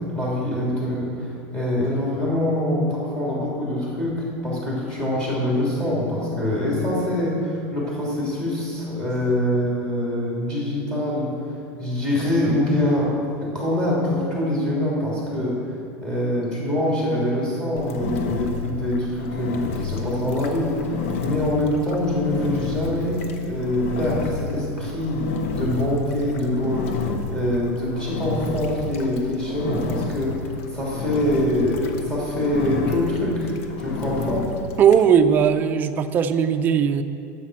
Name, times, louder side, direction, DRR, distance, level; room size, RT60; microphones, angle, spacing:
voice 1, 0.1-11.3 11.8-13.1 13.4-25.2 25.5-27.0 27.3-34.4, left 1 dB, 10° left, -6 dB, 3.1 m, -24 dB
Engine, 17.8-35.1, left 4 dB, 85° left, 1.1 m, -31 dB
voice 2, 34.8-37.0, right 8 dB, 25° right, 8 dB, 0.5 m, -18 dB
10.0 x 7.7 x 6.2 m, 2.5 s
supercardioid pair, 160°, 7 cm